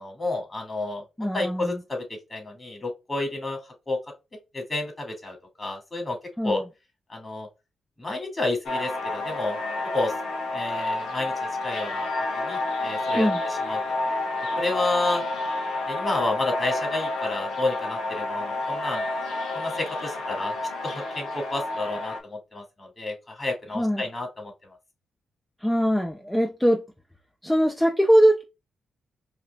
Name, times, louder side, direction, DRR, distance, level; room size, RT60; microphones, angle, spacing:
voice 1, 0.0-2.0 2.3-3.6 3.9-4.0 4.5-6.2 6.4-6.6 7.1-7.5 8.0-9.6 9.9-10.1 10.5-12.1 12.3-13.3 13.7-13.8 14.6-15.2 15.9-19.0 19.5-20.5 20.8-24.5, left 2 dB, 30° left, 2.5 m, -30 dB
voice 2, 1.2-1.8 6.4-6.6 13.1-13.4 23.7-24.0 25.6-26.8 27.4-28.4, equal, 10° left, 0.7 m, -21 dB
sound 1, 8.7-22.2, left 2 dB, 80° left, 1.3 m, -29 dB
4.8 x 2.9 x 2.3 m
hypercardioid pair, 45°, 0 cm